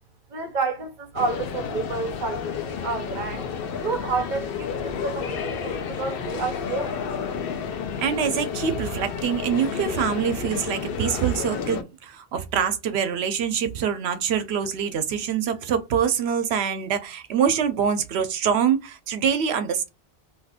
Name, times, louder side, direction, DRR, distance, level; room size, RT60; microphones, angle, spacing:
voice 1, 0.3-3.4 3.8-7.0, right 4 dB, 55° right, 0.7 m, -30 dB
sound 1, 1.2-11.8, left 7 dB, 65° left, 0.7 m, -31 dB
voice 2, 8.0-19.9, right 8 dB, 80° right, 0.8 m, -25 dB
2.7 x 2.4 x 3.4 m
omnidirectional pair, 1.1 m